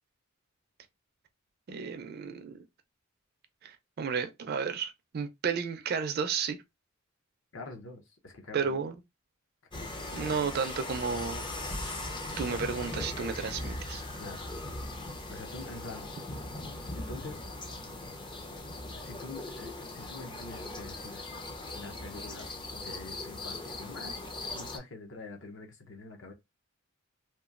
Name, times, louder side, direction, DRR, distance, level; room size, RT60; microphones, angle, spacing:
voice 1, 1.7-2.7 3.6-6.6 8.5-9.0 10.1-11.5 12.4-14.0, right 6 dB, 50° right, 0.4 m, -33 dB
voice 2, 7.5-8.8 10.2-10.5 14.2-14.4 15.3-16.1 16.9-17.5 19.0-21.2 21.7-26.3, left 3 dB, 65° left, 0.7 m, -46 dB
sound 1, 9.7-24.8, left 2 dB, 25° left, 0.4 m, -39 dB
2.9 x 2.2 x 2.4 m
head